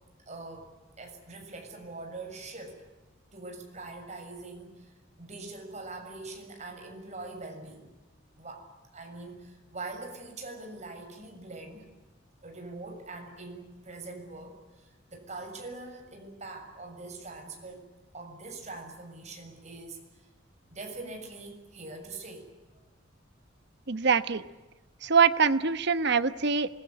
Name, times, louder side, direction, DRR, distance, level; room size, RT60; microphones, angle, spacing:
voice 1, 0.3-2.8 3.3-4.9 5.2-7.9 8.4-8.7 8.9-11.9 12.4-17.8 18.1-20.0 20.7-22.5, right 3 dB, 35° right, 3 dB, 7.0 m, -43 dB
voice 2, 23.9-24.4 25.0-26.7, right 5 dB, 60° right, 13 dB, 1.1 m, -24 dB
27.0 x 21.5 x 9.7 m, 1.1 s
head